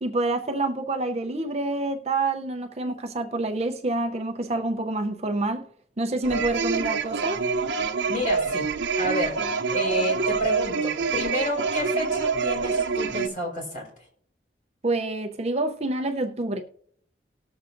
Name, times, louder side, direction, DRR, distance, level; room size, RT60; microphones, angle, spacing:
voice 1, 0.0-5.7 6.0-7.4 14.8-16.6, right 2 dB, 35° right, 0.6 m, -27 dB
sound 1, 6.2-13.3, right 5 dB, 75° right, 0.7 m, -26 dB
voice 2, 8.1-8.7 9.0-9.4 9.7-13.8, left 1 dB, 45° left, 3.9 m, -30 dB
19.0 x 7.0 x 2.6 m
head